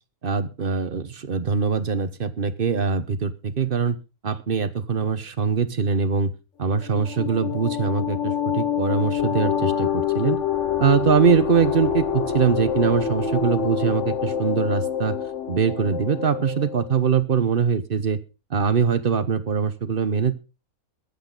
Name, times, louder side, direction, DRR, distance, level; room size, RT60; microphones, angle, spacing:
voice 1, 0.2-4.0 4.2-6.3 6.6-10.4 10.8-15.2 15.5-18.2 18.5-20.3, right 6 dB, 40° right, 13 dB, 1.2 m, -22 dB
sound 1, 6.7-17.0, left 8 dB, 55° left, 1.3 m, -26 dB
22.0 x 8.4 x 4.0 m, 0.31 s
omnidirectional pair, 1.5 m